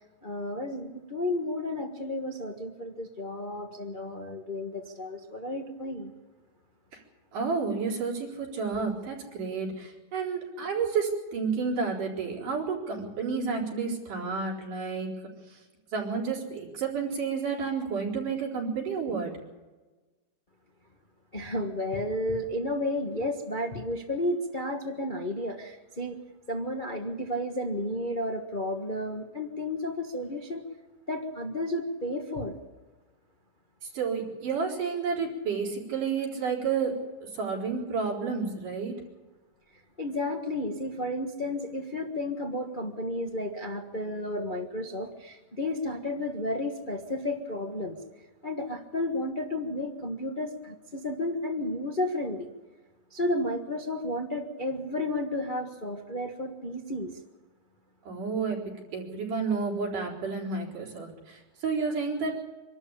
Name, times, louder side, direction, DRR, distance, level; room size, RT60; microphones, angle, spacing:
voice 1, 0.2-6.1 21.3-26.2 26.5-30.6 31.1-32.6 40.0-48.0 48.4-52.5 53.1-57.1, left 1 dB, 80° left, 1 dB, 0.4 m, -32 dB
voice 2, 7.3-15.1 15.9-19.3 33.9-36.9 37.4-38.9 58.1-62.3, right 5 dB, 75° right, -2 dB, 5.6 m, -30 dB
25.5 x 12.5 x 8.8 m, 1.2 s
omnidirectional pair, 3.7 m